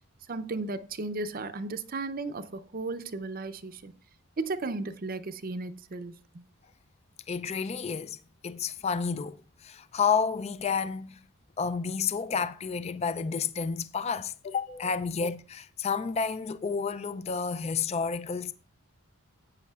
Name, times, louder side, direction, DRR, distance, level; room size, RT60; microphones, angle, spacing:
voice 1, 0.3-3.9 4.4-6.4, right 3 dB, 40° right, 0.6 m, -35 dB
voice 2, 7.3-8.2 8.4-11.2 11.6-18.5, left 5 dB, 30° left, 0.3 m, -30 dB
13.5 x 8.5 x 2.4 m
head